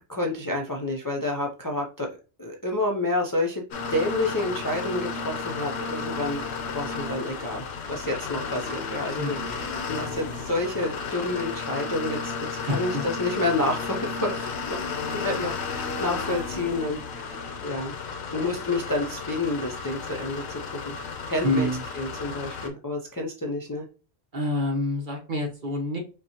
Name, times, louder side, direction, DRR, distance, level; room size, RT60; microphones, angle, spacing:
voice 1, 0.1-3.6 3.9-6.4 6.7-12.3 12.6-14.8 15.1-17.9 18.3-20.9 21.3-21.7 21.9-23.9, left 2 dB, 25° left, 0 dB, 0.5 m, -29 dB
sound 1, 3.7-22.7, left 4 dB, 75° left, 1.0 m, -33 dB
voice 2, 9.2-9.5 12.7-13.0 21.4-21.8 24.3-26.0, left 1 dB, 50° right, 0 dB, 1.2 m, -27 dB
5.3 x 2.3 x 2.8 m, 0.33 s
omnidirectional pair, 1.1 m